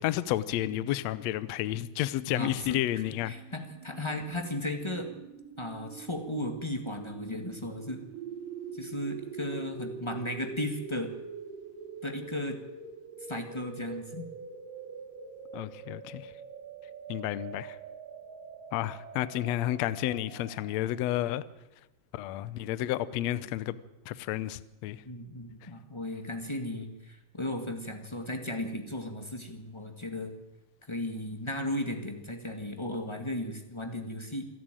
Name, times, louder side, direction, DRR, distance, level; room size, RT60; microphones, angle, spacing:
voice 1, 0.0-3.3 15.5-16.2 17.1-17.8 18.7-21.4 22.1-23.7 24.1-25.0, left 14 dB, 70° left, 1.6 m, -31 dB
sound 1, 1.8-20.8, right 6 dB, 80° right, 3.7 m, -45 dB
voice 2, 2.3-2.8 3.2-5.1 5.6-8.0 8.7-11.1 12.0-12.6 13.3-14.3 25.0-30.3 30.9-34.5, left 1 dB, 25° left, 0.5 m, -35 dB
27.0 x 11.5 x 9.0 m
omnidirectional pair, 3.9 m